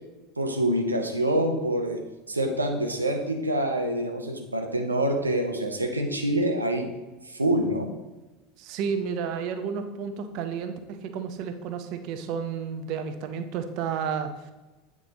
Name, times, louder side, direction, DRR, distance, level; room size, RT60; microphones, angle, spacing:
voice 1, 0.4-2.0 2.3-6.9 7.2-7.9, right 1 dB, 85° right, 3 dB, 0.7 m, -26 dB
voice 2, 8.6-14.5, right 6 dB, 50° right, 8 dB, 0.7 m, -31 dB
8.4 x 3.6 x 4.0 m, 1.1 s
figure-of-eight pair, 75°, 0 cm